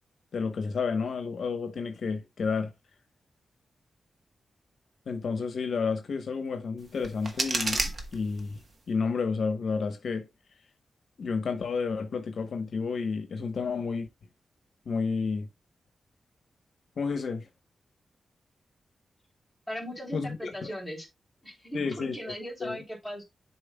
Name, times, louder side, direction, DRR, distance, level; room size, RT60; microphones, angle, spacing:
voice 1, 0.3-2.7 5.1-8.6 8.9-10.3 11.2-14.1 14.9-15.5 17.0-17.5 20.1-20.7 21.7-22.3 22.6-22.8, left 5 dB, 65° left, 0.9 m, -31 dB
sound 1, 6.8-8.8, right 2 dB, 40° right, 1.1 m, -32 dB
voice 2, 19.7-21.1 21.4-23.2, equal, ahead, 3.1 m, -38 dB
10.5 x 4.3 x 2.2 m
wide cardioid pair, 140°, 0 cm